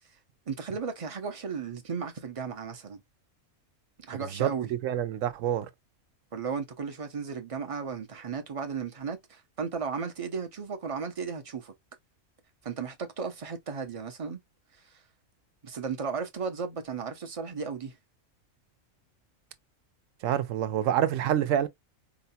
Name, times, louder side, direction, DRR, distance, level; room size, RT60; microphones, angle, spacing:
voice 1, 0.5-3.0 4.0-4.7 6.3-11.7 12.6-14.4 15.6-18.0, right 5 dB, 40° right, 0.5 m, -35 dB
voice 2, 4.8-5.7 20.2-21.7, right 10 dB, 70° right, 0.9 m, -26 dB
4.9 x 2.2 x 2.7 m
omnidirectional pair, 1.4 m